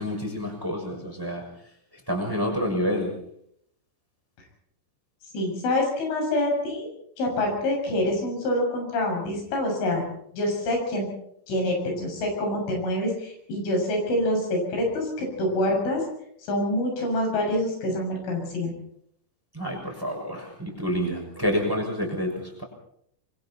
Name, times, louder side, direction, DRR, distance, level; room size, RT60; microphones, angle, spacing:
voice 1, 0.0-1.4 2.1-3.2 19.5-22.6, equal, 5° right, 1 dB, 6.1 m, -28 dB
voice 2, 5.3-6.9 7.2-10.0 10.3-11.1 11.5-16.0 16.5-18.7, left 1 dB, 90° left, 1 dB, 9.5 m, -26 dB
26.5 x 24.5 x 4.4 m, 0.69 s
omnidirectional pair, 5.4 m